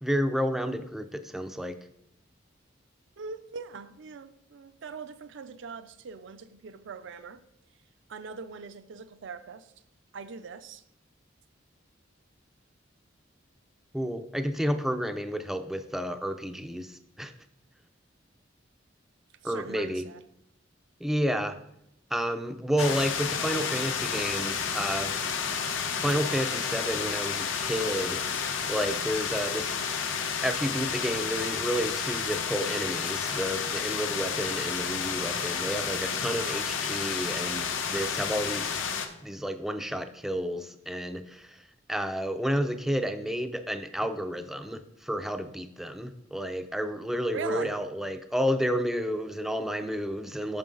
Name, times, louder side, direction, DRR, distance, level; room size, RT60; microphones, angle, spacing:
voice 1, 0.0-1.8 13.9-17.3 19.4-20.0 21.0-21.6 22.1-25.1 26.0-28.2 28.7-29.7 30.4-38.8 39.2-41.6 41.9-50.6, equal, ahead, 0.4 m, -31 dB
voice 2, 3.2-7.4 8.1-9.7 10.1-10.8 19.4-20.2 47.3-47.8, right 5 dB, 70° right, 0.5 m, -41 dB
sound 1, 22.8-39.1, left 6 dB, 75° left, 0.8 m, -31 dB
8.8 x 6.0 x 3.8 m
head